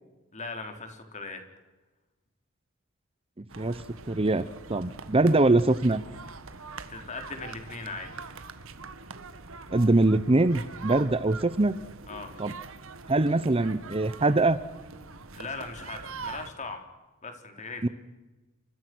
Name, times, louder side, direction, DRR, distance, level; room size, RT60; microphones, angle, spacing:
voice 1, 0.3-1.4 6.9-8.1 12.1-12.3 15.3-16.8 17.2-17.9, left 3 dB, 35° left, 5 dB, 3.9 m, -39 dB
sound 1, 3.5-16.5, right 4 dB, 65° right, 1.7 m, -43 dB
voice 2, 3.6-4.4 4.7-6.0 9.7-11.7 12.4-12.5 13.1-14.6 17.8-17.9, right 2 dB, 25° right, 15 dB, 0.8 m, -23 dB
28.5 x 24.5 x 6.2 m, 1.1 s
head